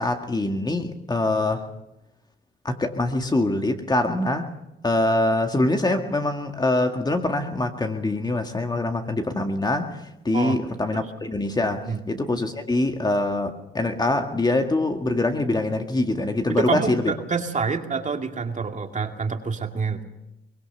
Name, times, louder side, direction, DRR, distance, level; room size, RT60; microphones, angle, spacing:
voice 1, 0.0-1.7 2.6-4.5 4.8-10.0 10.2-17.1, left 2 dB, 20° left, 5 dB, 2.0 m, -24 dB
voice 2, 16.5-20.0, right 5 dB, 40° right, 4 dB, 2.3 m, -27 dB
23.5 x 18.5 x 6.8 m, 0.90 s
cardioid pair, 90°, 20 cm